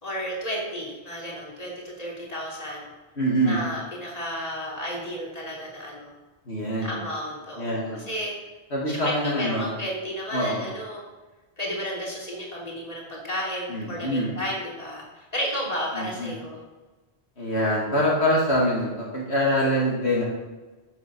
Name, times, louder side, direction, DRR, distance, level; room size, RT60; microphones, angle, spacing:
voice 1, 0.0-2.9 3.4-6.1 6.8-8.3 8.9-11.0 11.6-16.6, equal, 35° left, -3 dB, 3.2 m, -32 dB
voice 2, 3.2-3.6 6.5-7.0 7.6-8.1 8.7-9.7 10.3-10.6 13.7-14.4 15.9-16.3 17.4-20.2, equal, 70° left, -4 dB, 2.7 m, -24 dB
13.5 x 6.8 x 6.2 m, 1.2 s
omnidirectional pair, 1.1 m